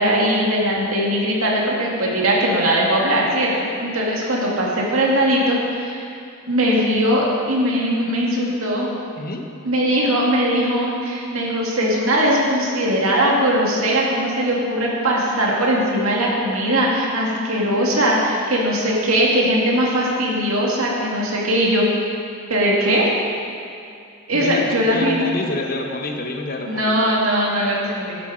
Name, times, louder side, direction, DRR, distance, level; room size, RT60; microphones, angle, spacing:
voice 1, 0.0-6.1 6.5-9.0 9.7-21.9 22.5-23.1 24.3-25.2 26.7-28.2, equal, 80° right, -3 dB, 2.2 m, -20 dB
voice 2, 24.3-27.0, left 2 dB, 45° left, 3 dB, 1.0 m, -27 dB
11.5 x 8.2 x 5.0 m, 2.4 s
head